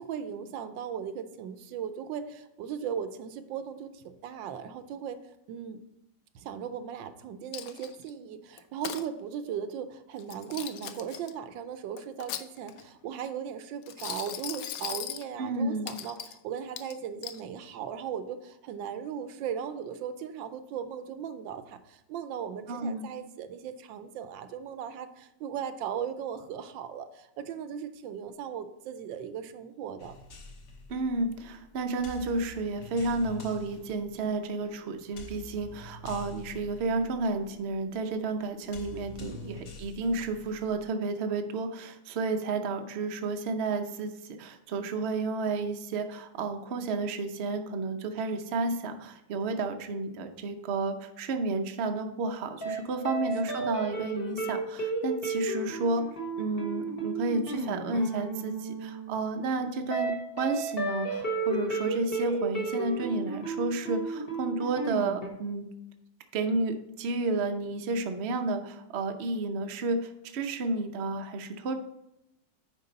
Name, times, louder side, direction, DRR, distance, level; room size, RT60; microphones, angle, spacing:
voice 1, 0.0-5.2 5.5-5.8 6.3-30.2 39.2-39.6 52.9-53.3 53.6-53.7, right 8 dB, 80° right, 10 dB, 1.3 m, -38 dB
Coin (dropping), 7.5-8.1 8.6-9.0 10.2-11.3 12.0-12.9 13.8-15.3 15.9-16.4 16.8-17.4, left 10 dB, 75° left, 0.8 m, -38 dB
voice 2, 15.4-15.9 22.7-23.1 30.9-44.1 44.4-56.0 56.4-65.7 66.3-71.7, right 3 dB, 65° right, 5 dB, 0.6 m, -31 dB
sound 1, 30.0-40.9, left 1 dB, 60° left, 1.6 m, -47 dB
sound 2, 52.6-52.8 53.0-65.3, right 3 dB, 35° left, 1.1 m, -33 dB
9.5 x 4.6 x 3.9 m, 0.85 s
omnidirectional pair, 2.1 m